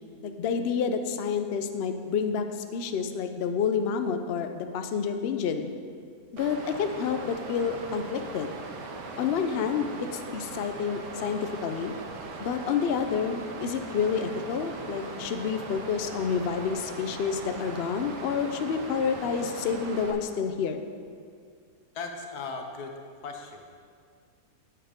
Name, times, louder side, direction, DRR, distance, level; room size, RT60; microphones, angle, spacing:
voice 1, 0.2-2.4 2.7-5.7 6.3-8.5 9.2-11.9 12.4-20.8, left 6 dB, 90° left, 7 dB, 0.5 m, -29 dB
Water, 6.4-20.1, right 3 dB, 90° right, 1.5 m, -40 dB
voice 2, 21.9-23.0 23.2-23.7, left 4 dB, 70° left, 4 dB, 1.4 m, -37 dB
8.9 x 6.5 x 5.1 m, 2.1 s
omnidirectional pair, 1.8 m